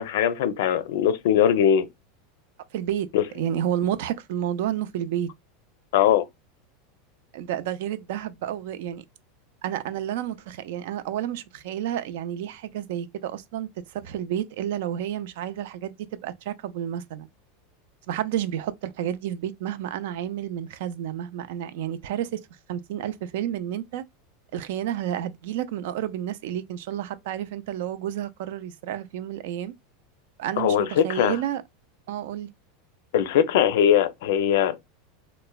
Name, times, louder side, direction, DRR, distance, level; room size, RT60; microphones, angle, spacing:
voice 1, 0.0-1.9 3.1-3.2 5.9-6.2 30.6-31.3 33.1-34.9, left 9 dB, 75° left, 0.4 m, -21 dB
voice 2, 2.7-3.1 3.3-5.3 7.3-9.0 9.6-17.3 18.1-22.4 22.7-24.0 24.5-29.7 30.4-31.6 32.1-32.5, right 10 dB, 70° right, 0.3 m, -30 dB
3.0 x 2.0 x 2.2 m
supercardioid pair, 135°, 0 cm